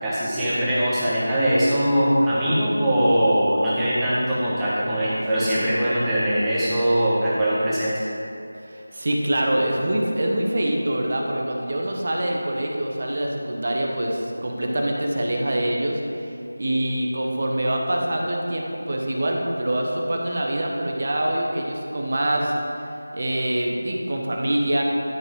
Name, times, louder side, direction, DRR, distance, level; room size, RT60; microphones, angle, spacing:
voice 1, 0.0-8.0, equal, 10° right, -11 dB, 1.3 m, -21 dB
voice 2, 8.6-22.5 23.1-24.8, right 1 dB, 50° right, 0 dB, 1.2 m, -25 dB
12.0 x 5.1 x 3.8 m, 2.8 s
figure-of-eight pair, 170°, 0 cm